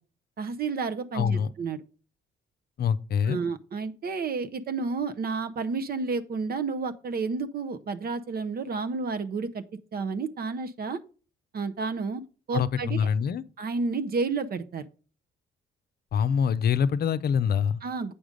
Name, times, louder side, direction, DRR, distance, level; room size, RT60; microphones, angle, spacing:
voice 1, 0.4-1.8 3.3-9.6 9.9-11.0 11.5-12.2 12.5-13.0 13.6-14.8 17.8-18.1, right 4 dB, 50° right, 0.7 m, -31 dB
voice 2, 1.1-1.5 2.8-3.4 12.5-13.4 16.1-17.8, left 7 dB, 50° left, 0.6 m, -25 dB
8.6 x 5.0 x 5.1 m
cardioid pair, 90°, 20 cm